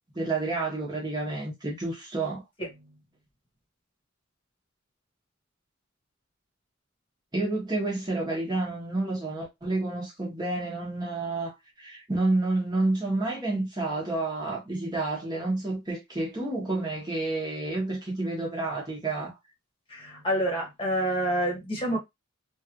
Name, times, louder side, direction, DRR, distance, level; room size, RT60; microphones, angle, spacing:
voice 1, 0.1-2.4 7.3-19.3, right 2 dB, 20° right, 1.1 m, -29 dB
voice 2, 19.9-22.0, right 1 dB, 25° left, 1.2 m, -27 dB
3.1 x 2.5 x 2.9 m
head